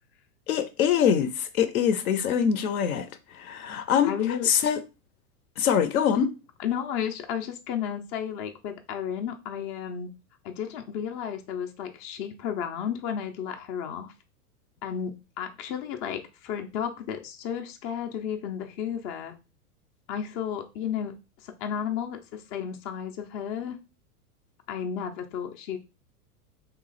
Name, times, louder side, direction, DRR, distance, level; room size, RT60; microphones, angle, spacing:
voice 1, 0.5-4.8 5.6-6.3, left 8 dB, 65° left, 0.7 m, -24 dB
voice 2, 4.0-4.5 6.6-10.1 10.4-14.1 14.8-19.4 20.1-21.2 21.4-23.8 24.7-25.8, left 8 dB, 30° left, 0.5 m, -33 dB
3.1 x 2.4 x 3.9 m
hypercardioid pair, 105°, 46 cm